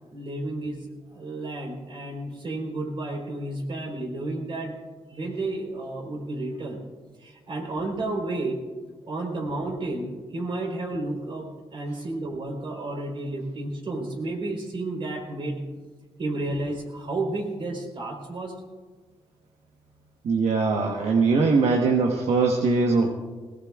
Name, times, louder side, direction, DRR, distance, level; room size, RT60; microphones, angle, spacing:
voice 1, 0.1-4.8 5.1-6.8 7.2-8.6 9.1-15.6 16.2-18.5, right 2 dB, 50° right, 1 dB, 3.8 m, -31 dB
voice 2, 20.2-23.1, right 4 dB, 80° right, 1 dB, 1.1 m, -21 dB
20.0 x 18.5 x 2.4 m, 1.4 s
cardioid pair, 70°, 11 cm